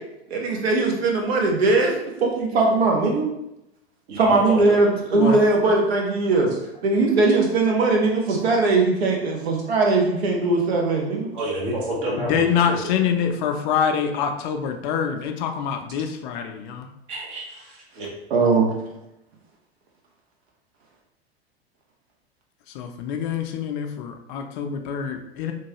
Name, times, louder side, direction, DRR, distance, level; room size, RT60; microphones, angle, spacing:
voice 1, 0.3-1.9 2.2-3.3 4.2-6.5 6.8-11.3 18.3-18.7, right 3 dB, 75° right, 0 dB, 0.9 m, -20 dB
voice 2, 4.1-4.8 11.3-12.4 12.8-12.9 17.1-18.1, right 1 dB, 55° right, -3 dB, 1.2 m, -29 dB
voice 3, 12.2-16.9 22.7-25.5, left 7 dB, 50° left, 5 dB, 0.4 m, -25 dB
3.1 x 2.2 x 2.9 m, 0.85 s
hypercardioid pair, 85°, 31 cm